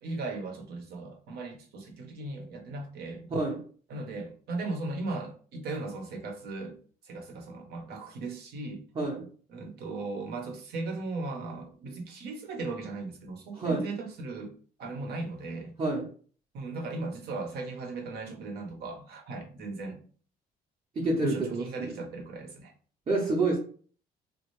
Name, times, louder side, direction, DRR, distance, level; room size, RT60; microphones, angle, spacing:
voice 1, 0.0-3.3 3.9-6.8 7.0-8.8 9.5-14.5 14.8-15.7 16.5-20.0 21.2-22.7, right 3 dB, 70° right, 0.9 m, -37 dB
voice 2, 3.3-3.6 8.9-9.3 13.5-13.9 15.8-16.1 20.9-22.0 23.1-23.6, right 2 dB, 30° right, 0.8 m, -28 dB
3.2 x 2.3 x 3.1 m
cardioid pair, 110°, 17 cm